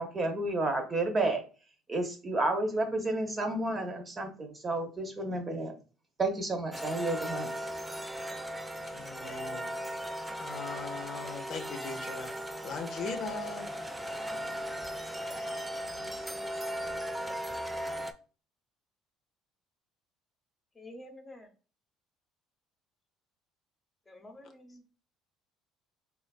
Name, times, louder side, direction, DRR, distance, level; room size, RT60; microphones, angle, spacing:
voice 1, 0.0-1.4 1.9-5.7 6.2-7.5, right 2 dB, 30° right, 4 dB, 0.8 m, -31 dB
sound 1, 6.7-18.1, equal, 10° right, 0.3 m, -37 dB
voice 2, 8.8-9.7 10.4-12.3 12.6-13.7 14.0-14.2, left 5 dB, 60° left, 5 dB, 0.5 m, -40 dB
voice 3, 20.8-21.5 24.1-24.8, left 1 dB, 25° left, 5 dB, 0.8 m, -49 dB
3.2 x 2.4 x 2.2 m, 0.37 s
supercardioid pair, 80°, 0 cm